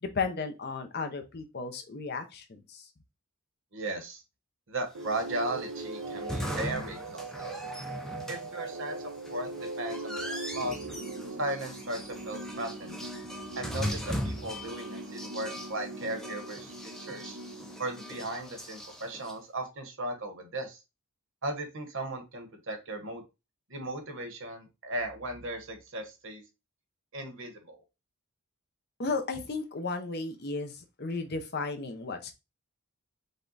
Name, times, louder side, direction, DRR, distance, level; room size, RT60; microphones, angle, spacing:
voice 1, 0.0-2.9 29.0-32.3, left 4 dB, 45° left, 7 dB, 0.7 m, -34 dB
voice 2, 3.7-4.2 4.7-7.6 8.3-9.5 9.8-10.9 11.4-13.1 13.6-17.4 17.8-20.8 21.4-23.2 23.7-26.4 27.1-27.8, right 1 dB, 60° right, 5 dB, 1.2 m, -36 dB
sound 1, 4.9-18.7, right 2 dB, 80° right, 1.0 m, -41 dB
sound 2, 5.0-19.3, equal, ahead, 0.6 m, -40 dB
5.3 x 2.3 x 4.0 m, 0.26 s
head